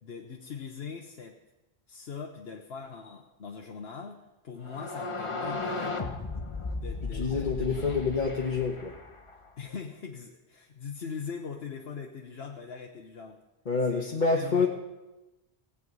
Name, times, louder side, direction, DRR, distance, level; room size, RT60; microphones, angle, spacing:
voice 1, 0.0-1.4 1.9-6.0 6.7-8.0 9.6-13.4 13.9-14.1 14.3-14.7, left 6 dB, 70° left, 1 dB, 1.2 m, -41 dB
sound 1, 4.7-9.5, left 3 dB, 30° left, 1.0 m, -35 dB
voice 2, 7.1-8.9 13.7-14.7, left 4 dB, 45° left, -1 dB, 1.3 m, -27 dB
17.5 x 8.4 x 5.4 m, 1.0 s
omnidirectional pair, 1.1 m